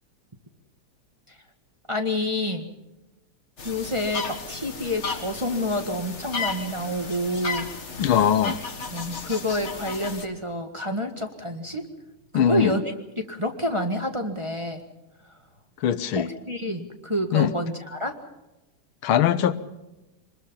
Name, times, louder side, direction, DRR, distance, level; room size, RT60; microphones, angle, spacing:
voice 1, 1.9-2.7 3.6-7.9 8.9-11.9 12.3-12.8 13.2-14.8 15.2-15.5 16.1-18.1, left 1 dB, 15° right, 3 dB, 1.5 m, -28 dB
sound 1, 3.6-10.2, left 4 dB, 35° left, 1.8 m, -34 dB
voice 2, 8.0-8.6 12.3-12.7 15.8-16.3 17.3-17.5 19.0-19.5, left 9 dB, 80° left, 13 dB, 1.8 m, -21 dB
25.5 x 21.0 x 5.6 m, 1.0 s
omnidirectional pair, 2.3 m